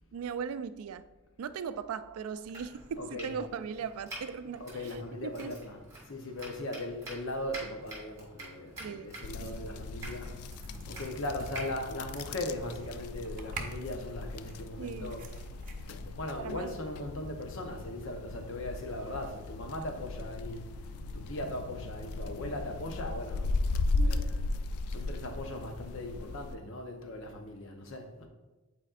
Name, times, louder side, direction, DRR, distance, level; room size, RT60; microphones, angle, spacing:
voice 1, 0.1-1.1 1.4-5.6 8.8-9.8 14.8-15.1 16.4-16.7 23.9-24.5, right 6 dB, 80° right, 0.3 m, -39 dB
Domestic sounds home sounds, 2.4-13.0, right 1 dB, 15° right, 1.9 m, -48 dB
voice 2, 2.9-3.4 4.5-10.4 10.9-15.3 15.9-20.7 21.1-23.7 24.0-24.4 24.9-28.3, left 1 dB, 60° left, 0.8 m, -39 dB
sound 1, 9.2-26.5, left 3 dB, 85° left, 0.3 m, -37 dB
sound 2, 10.5-22.8, right 2 dB, 35° right, 0.6 m, -49 dB
9.1 x 4.3 x 2.5 m
head